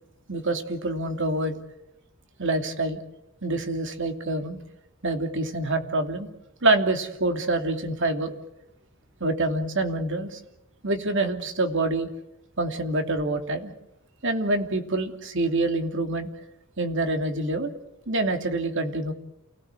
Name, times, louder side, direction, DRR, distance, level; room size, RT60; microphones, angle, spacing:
voice 1, 0.3-1.6 2.4-3.0 3.4-4.6 5.0-6.3 6.6-8.3 9.2-10.4 10.8-12.1 12.6-13.7 14.2-16.3 16.8-17.7 18.1-19.1, right 2 dB, 55° right, 6 dB, 2.7 m, -26 dB
29.5 x 17.0 x 8.1 m, 0.88 s
head